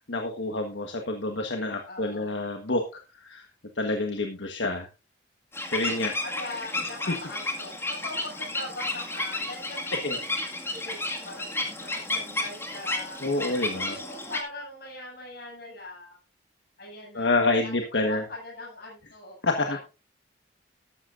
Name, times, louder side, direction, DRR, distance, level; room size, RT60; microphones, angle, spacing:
voice 1, 0.1-3.4 3.8-4.9 5.7-6.1 10.0-10.2 13.2-14.0 17.1-18.2 19.4-19.8, left 2 dB, 75° left, 4 dB, 1.4 m, -28 dB
voice 2, 1.9-2.5 6.2-10.3 10.7-11.5 11.8-13.6 13.8-16.2 16.8-17.7 18.0-19.4 19.6-19.8, left 2 dB, 60° left, -2 dB, 7.2 m, -41 dB
sound 1, 5.5-14.4, left 2 dB, 15° left, 2.0 m, -32 dB
13.5 x 13.0 x 2.6 m, 0.29 s
head